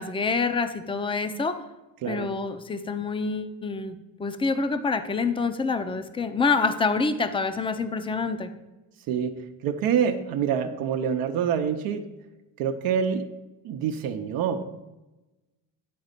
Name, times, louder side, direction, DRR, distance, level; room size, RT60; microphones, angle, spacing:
voice 1, 0.0-1.6 2.1-8.5, left 4 dB, 15° left, 10 dB, 0.6 m, -27 dB
voice 2, 9.1-12.1 12.6-13.3 13.6-14.6, right 7 dB, 75° right, 5 dB, 0.7 m, -26 dB
9.5 x 4.0 x 6.6 m, 1.0 s
cardioid pair, 115°, 36 cm